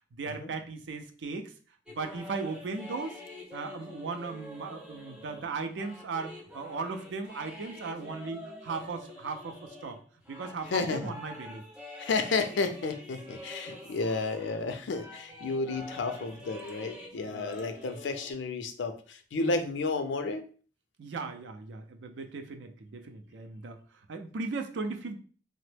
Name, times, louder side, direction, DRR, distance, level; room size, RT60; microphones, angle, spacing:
voice 1, 0.2-1.5 1.9-3.2 3.5-10.0 10.3-11.6 17.2-17.6 19.4-19.6 21.0-23.8 24.1-25.2, right 4 dB, 90° right, 6 dB, 0.4 m, -37 dB
sound 1, 1.9-14.6 14.9-18.3, left 1 dB, 5° right, 0.6 m, -46 dB
voice 2, 10.7-11.1 12.0-20.4, left 3 dB, 85° left, 8 dB, 0.4 m, -32 dB
2.9 x 2.0 x 3.2 m, 0.40 s
head